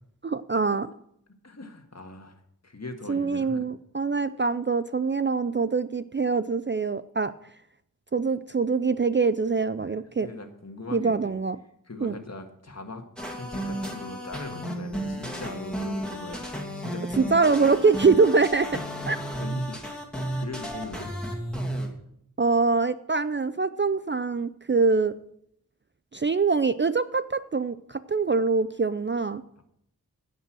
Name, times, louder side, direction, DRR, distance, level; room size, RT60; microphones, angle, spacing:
voice 1, 0.2-0.9 3.1-7.3 8.1-10.3 10.9-11.6 12.0-12.1 17.2-18.7 19.1-19.2 22.4-25.1 26.1-29.4, right 4 dB, 35° right, 13 dB, 0.4 m, -24 dB
voice 2, 1.4-3.7 9.8-9.9 10.2-11.4 11.9-13.0 13.3-16.4 16.7-17.4 19.4-19.8 20.3-21.1 29.6-29.7, left 2 dB, 45° left, 4 dB, 1.7 m, -40 dB
sound 1, 13.2-21.9, right 1 dB, 5° left, 2.5 m, -33 dB
16.0 x 5.5 x 6.1 m, 0.74 s
wide cardioid pair, 55°, 36 cm